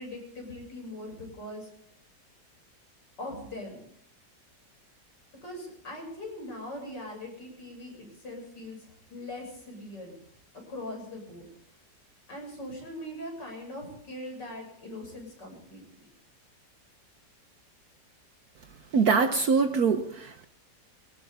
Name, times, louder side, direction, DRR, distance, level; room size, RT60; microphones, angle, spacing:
voice 1, 0.0-1.7 3.2-3.8 5.4-10.1 10.7-11.5 12.3-16.1, left 1 dB, 70° left, 0 dB, 7.3 m, -41 dB
voice 2, 18.9-20.4, right 5 dB, 60° right, 7 dB, 1.4 m, -24 dB
21.0 x 18.5 x 3.6 m, 0.63 s
omnidirectional pair, 1.9 m